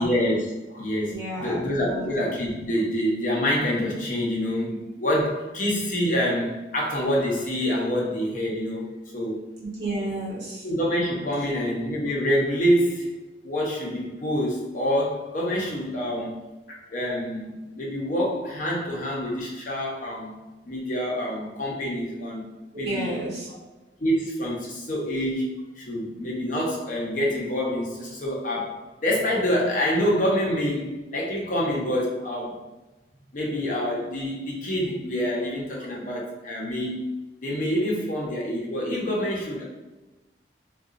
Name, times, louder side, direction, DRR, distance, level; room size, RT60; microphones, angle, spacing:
voice 1, 0.0-8.8 9.1-9.4 10.6-13.1 13.4-16.4 16.7-20.4 20.6-22.4 22.8-23.2 24.0-25.5 25.8-32.7 33.3-37.0 37.4-39.6, equal, 45° left, -3 dB, 0.8 m, -26 dB
voice 2, 1.1-2.1 9.6-10.7 22.7-23.5, right 1 dB, 65° right, -7 dB, 1.3 m, -31 dB
3.8 x 2.3 x 2.4 m, 1.1 s
head